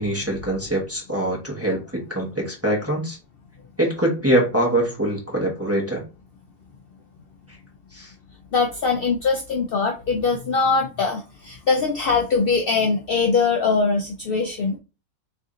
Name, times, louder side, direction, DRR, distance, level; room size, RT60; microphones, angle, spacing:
voice 1, 0.0-3.2 3.8-6.0 7.5-7.6 7.9-8.1, right 1 dB, 10° right, -3 dB, 0.8 m, -23 dB
voice 2, 8.5-14.8, left 4 dB, 75° left, 2 dB, 0.5 m, -22 dB
3.2 x 2.7 x 3.7 m, 0.32 s
omnidirectional pair, 1.6 m